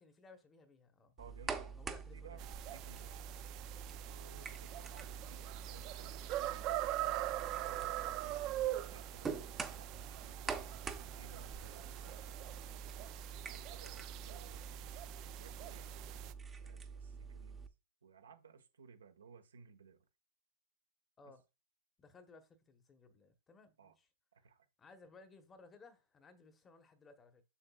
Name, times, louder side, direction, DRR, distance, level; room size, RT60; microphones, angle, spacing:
voice 1, 0.0-1.1 1.7-2.4 4.4-4.6 11.8-12.0 21.2-21.4 22.0-24.1 24.8-27.4, left 3 dB, 15° left, 1.1 m, -60 dB
sound 1, 1.2-17.7, right 5 dB, 15° right, 0.8 m, -46 dB
voice 2, 1.2-1.8 2.1-3.2 4.1-6.9 7.3-10.6 11.1-12.5 13.4-14.8 15.4-16.1 16.6-17.6 18.0-20.0 21.2-21.3 23.8-23.9 24.3-24.7, right 5 dB, 85° right, 1.3 m, -59 dB
sound 2, 2.4-16.3, right 14 dB, 35° right, 0.4 m, -43 dB
7.0 x 6.4 x 2.4 m
hypercardioid pair, 135°, 0 cm